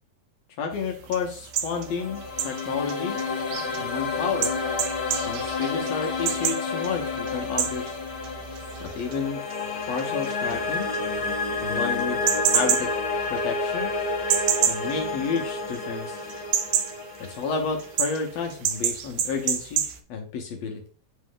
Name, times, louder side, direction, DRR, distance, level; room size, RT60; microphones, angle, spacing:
voice 1, 0.6-3.2 3.8-4.5 5.2-8.0 8.8-9.4 9.9-10.9 11.6-12.9 13.3-13.9 14.7-16.2 17.2-20.8, left 5 dB, 70° left, 2 dB, 1.9 m, -31 dB
sound 1, 0.7-15.9 16.2-20.0, right 9 dB, 75° right, 1.6 m, -30 dB
sound 2, 1.6-18.7, left 3 dB, 50° left, 1.4 m, -30 dB
9.3 x 3.1 x 3.7 m, 0.41 s
omnidirectional pair, 3.3 m